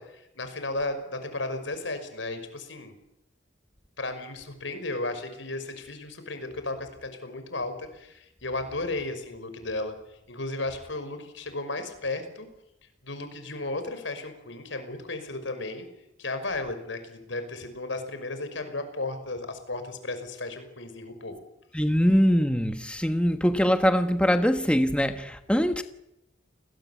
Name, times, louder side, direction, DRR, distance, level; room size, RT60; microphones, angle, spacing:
voice 1, 0.0-2.9 4.0-10.0 10.3-12.5 13.0-15.8 16.2-21.4, left 2 dB, 75° left, 5.7 m, -34 dB
voice 2, 21.7-25.8, equal, 5° left, 1.3 m, -23 dB
30.0 x 20.5 x 8.4 m
head